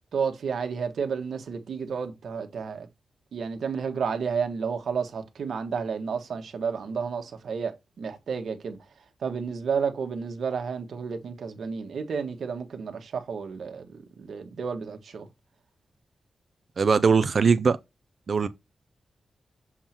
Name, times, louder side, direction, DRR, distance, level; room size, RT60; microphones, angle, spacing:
voice 1, 0.1-2.9 3.3-15.3 18.4-18.5, right 6 dB, 75° right, 1.5 m, -31 dB
voice 2, 16.8-17.8 18.3-18.5, right 5 dB, 45° right, 0.6 m, -20 dB
7.2 x 3.7 x 4.4 m
wide cardioid pair, 150°, 0 cm